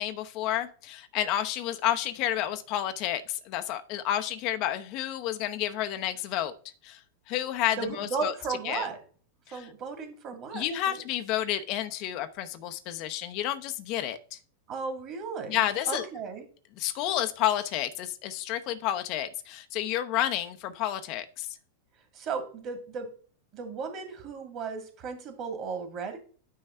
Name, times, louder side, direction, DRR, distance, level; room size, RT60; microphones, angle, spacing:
voice 1, 0.0-6.5 6.8-8.3 8.6-8.9 9.5-9.7 10.5-14.4 15.5-16.0 16.8-21.6, left 12 dB, 40° left, 0.7 m, -30 dB
voice 2, 7.8-9.0 9.5-11.0 14.7-16.4 22.1-23.1 23.5-26.2, right 5 dB, 35° right, 2.0 m, -35 dB
9.3 x 3.2 x 5.5 m
figure-of-eight pair, 90°, 0 cm